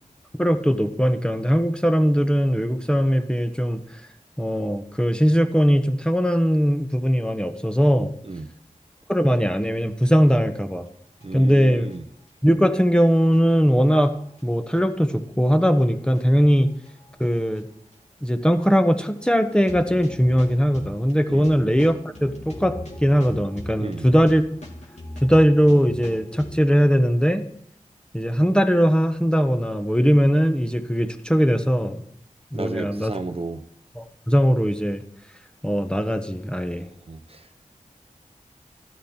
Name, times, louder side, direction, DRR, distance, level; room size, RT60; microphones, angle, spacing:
voice 1, 0.4-3.8 4.4-8.1 9.1-10.9 11.3-11.9 12.4-14.2 14.4-16.7 17.2-17.7 18.2-24.4 25.2-27.5 28.1-32.0 32.5-33.2 34.0-35.0 35.6-36.9, equal, 5° left, 7 dB, 1.1 m, -20 dB
sound 1, 11.2-12.0 12.3-12.4 13.0-13.1 13.3-13.4 13.9-14.8 15.4-15.8 16.1-16.2 16.9-17.3 17.6-17.7 17.9-18.0 18.6-18.7 19.0-19.1 19.5-26.6, left 1 dB, 55° left, 2.6 m, -40 dB
voice 2, 11.2-12.0 21.3-21.5 23.8-24.1 32.5-33.6 37.1-37.6, right 3 dB, 45° right, 9 dB, 0.9 m, -33 dB
12.5 x 11.5 x 4.4 m, 0.70 s
cardioid pair, 45°, 14 cm